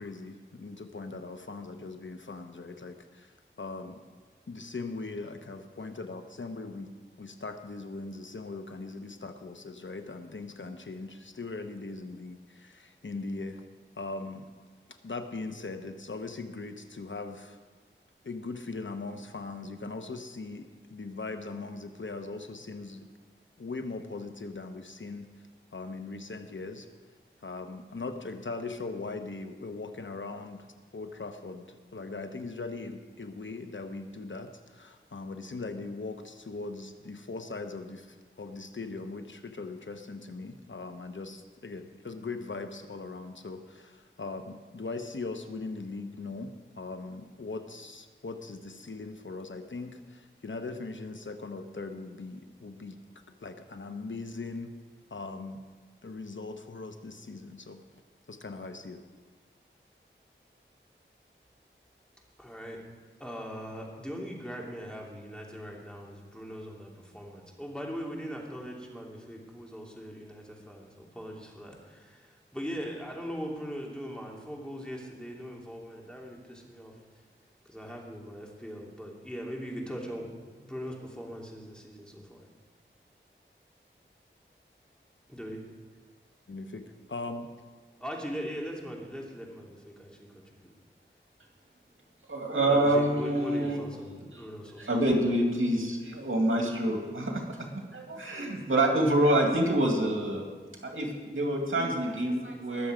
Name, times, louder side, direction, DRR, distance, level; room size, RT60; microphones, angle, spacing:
voice 1, 0.0-4.0 4.5-6.9 7.2-13.6 14.0-14.5 15.0-17.6 18.2-20.6 20.9-23.0 23.6-25.3 25.7-26.9 27.4-30.7 30.9-46.5 46.8-53.0 53.4-54.7 55.1-55.6 56.0-57.8 58.3-59.0 86.5-87.5, left 3 dB, 70° left, 7 dB, 1.0 m, -40 dB
voice 2, 62.4-62.8 63.2-76.9 77.6-82.5 85.3-85.6 88.0-90.7 92.6-95.0, equal, 5° left, -1 dB, 2.8 m, -40 dB
voice 3, 92.3-93.8 94.8-100.5 100.8-102.9, right 1 dB, 80° right, 1 dB, 2.3 m, -27 dB
20.5 x 7.2 x 5.1 m, 1.5 s
wide cardioid pair, 45°, 21 cm